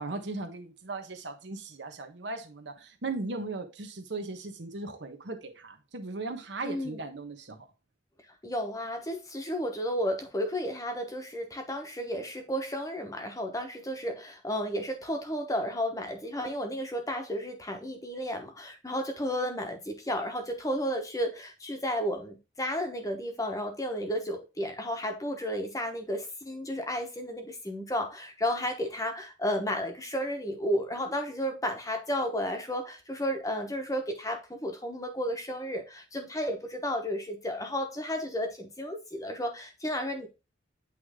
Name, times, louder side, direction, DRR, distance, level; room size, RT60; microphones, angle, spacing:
voice 1, 0.0-7.6, right 3 dB, 65° right, 1.0 m, -38 dB
voice 2, 6.6-7.0 8.4-40.3, equal, 15° left, 1.0 m, -33 dB
8.3 x 3.3 x 3.6 m
head